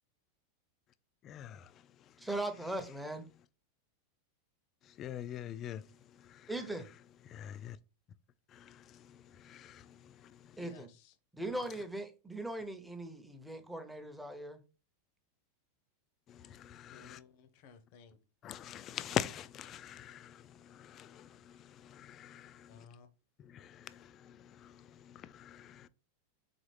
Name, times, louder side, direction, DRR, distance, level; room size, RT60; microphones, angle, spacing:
voice 1, 1.2-1.7 5.0-5.8 6.2-6.5 7.3-7.8 8.5-10.6 16.3-17.2 18.4-22.8 23.4-25.9, left 10 dB, 35° left, 0.3 m, -44 dB
voice 2, 2.2-3.3 6.5-6.9 10.6-10.9 11.3-14.6, right 1 dB, 5° right, 0.7 m, -39 dB
voice 3, 10.5-11.1 16.9-18.2 22.7-23.1, left 6 dB, 60° left, 0.7 m, -57 dB
4.0 x 3.9 x 3.2 m
hypercardioid pair, 115°, 0 cm